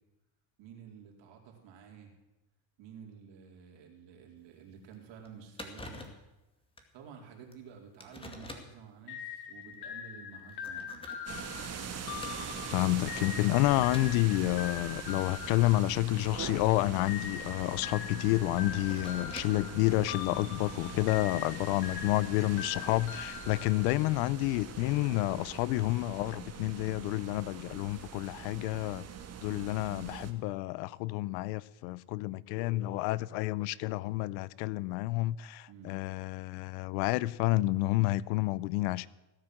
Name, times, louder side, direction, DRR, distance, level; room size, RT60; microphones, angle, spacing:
voice 1, 0.6-2.1 2.8-6.1 6.9-11.4 12.5-13.0 14.3-14.6 29.4-29.8 35.7-36.0, right 7 dB, 60° right, 4.3 m, -51 dB
sound 1, 4.4-4.5 4.9-5.0 5.2-5.3 5.6-6.3 6.8-6.9 7.5-7.6 8.0-8.8 9.6-9.8 10.4-12.7 13.1-13.4 13.9-14.2 15.2-17.7 18.5-19.7, left 1 dB, 10° left, 2.2 m, -48 dB
sound 2, 9.1-16.5 17.1-24.3, left 8 dB, 50° left, 1.7 m, -43 dB
sound 3, 11.3-30.3, right 7 dB, 30° right, 1.8 m, -43 dB
voice 2, 12.7-29.0 29.4-39.1, left 18 dB, 90° left, 0.8 m, -29 dB
17.5 x 10.0 x 7.8 m
cardioid pair, 140°, 49 cm